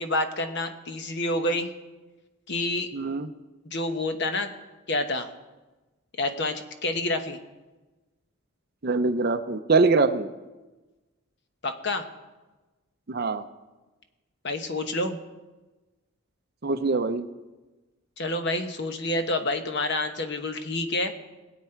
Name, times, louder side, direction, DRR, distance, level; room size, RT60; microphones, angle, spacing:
voice 1, 0.0-1.7 2.5-2.9 3.6-4.5 4.9-5.3 6.2-7.4 11.6-12.1 14.4-15.2 18.2-21.1, left 2 dB, 50° left, 7 dB, 1.1 m, -28 dB
voice 2, 2.9-3.3 8.8-10.3 13.1-13.4 16.6-17.3, right 3 dB, 45° right, 10 dB, 0.6 m, -23 dB
21.0 x 8.3 x 4.5 m, 1.2 s
head